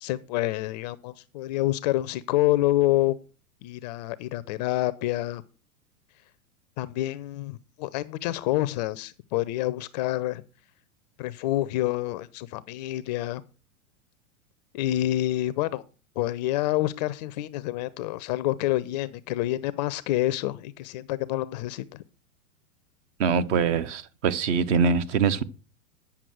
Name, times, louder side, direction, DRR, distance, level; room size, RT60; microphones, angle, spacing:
voice 1, 0.0-3.2 3.6-5.4 6.8-10.4 11.2-13.4 14.7-15.8 16.2-22.0, left 15 dB, 30° left, 0.4 m, -27 dB
voice 2, 23.2-25.4, right 6 dB, 55° right, 0.9 m, -23 dB
9.2 x 5.8 x 6.1 m
hypercardioid pair, 105°, 44 cm